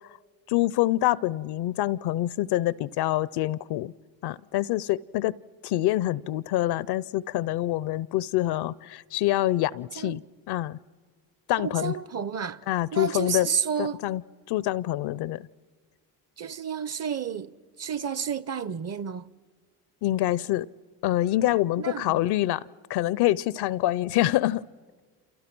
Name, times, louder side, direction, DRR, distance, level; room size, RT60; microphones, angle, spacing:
voice 1, 0.5-3.9 4.2-5.3 5.6-10.2 10.5-10.8 11.5-11.9 12.7-13.5 13.8-14.2 14.5-15.5 20.0-20.7 21.0-24.6, left 15 dB, 60° left, 0.6 m, -26 dB
voice 2, 11.6-12.6 12.9-14.0 16.4-19.3 21.8-22.2, right 7 dB, 35° right, 0.7 m, -31 dB
28.5 x 28.0 x 6.1 m
supercardioid pair, 75°, 44 cm